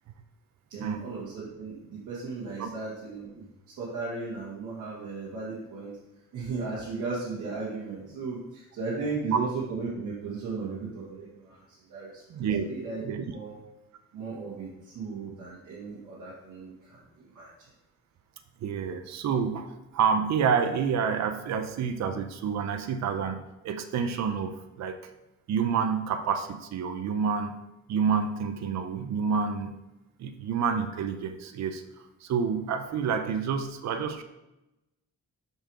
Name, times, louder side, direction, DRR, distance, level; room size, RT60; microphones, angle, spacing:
voice 1, 0.7-3.5 3.8-6.0 6.3-12.2 12.6-13.0 13.3-13.6 14.1-17.5, right 4 dB, 80° right, -7 dB, 1.7 m, -36 dB
voice 2, 12.3-12.7 13.0-13.2 18.6-25.0 25.5-27.5 27.9-29.7 30.2-31.8 32.2-34.2, right 6 dB, 65° right, 7 dB, 0.7 m, -28 dB
6.1 x 4.6 x 4.8 m, 0.95 s
cardioid pair, 90°, 30 cm